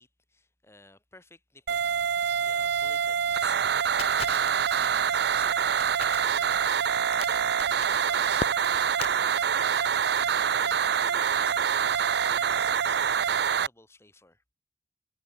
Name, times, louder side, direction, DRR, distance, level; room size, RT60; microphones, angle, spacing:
voice 1, 0.0-1.8 2.4-3.7 4.8-6.6 7.2-8.5 8.9-14.4, left 3 dB, 15° left, 2.9 m, -52 dB
sound 1, 1.7-13.7, right 7 dB, 60° right, 0.5 m, -25 dB
Crackle, 4.0-9.1, left 6 dB, 35° left, 0.3 m, -40 dB
head